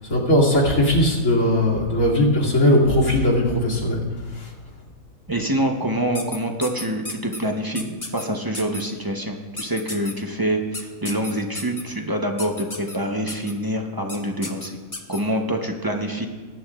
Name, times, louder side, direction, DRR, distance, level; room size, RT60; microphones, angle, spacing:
voice 1, 0.1-4.1 4.3-4.5, left 1 dB, 65° left, -6 dB, 2.8 m, -19 dB
voice 2, 5.3-14.8 15.1-16.3, right 1 dB, 20° right, 3 dB, 0.7 m, -26 dB
sound 1, 6.1-7.4 7.7-8.2 8.5-8.8 9.6-10.1 10.7-11.8 12.4-13.0 13.3-13.5 14.1-14.2 14.4-15.2, left 2 dB, 20° left, 0.7 m, -33 dB
20.5 x 9.6 x 2.5 m, 1.4 s
omnidirectional pair, 1.5 m